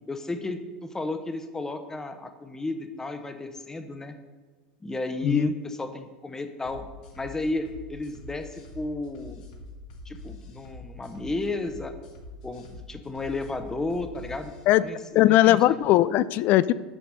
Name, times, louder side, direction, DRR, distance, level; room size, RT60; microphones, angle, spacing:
voice 1, 0.1-4.2 4.8-6.9 7.1-9.4 10.0-11.9 12.4-14.5 14.8-15.8, left 2 dB, 15° left, 8 dB, 0.9 m, -33 dB
sound 1, 6.6-14.6, left 2 dB, 75° left, 1.6 m, -44 dB
voice 2, 15.1-16.7, left 14 dB, 50° left, 17 dB, 0.4 m, -19 dB
7.2 x 5.9 x 6.8 m, 1.4 s
hypercardioid pair, 90°, 4 cm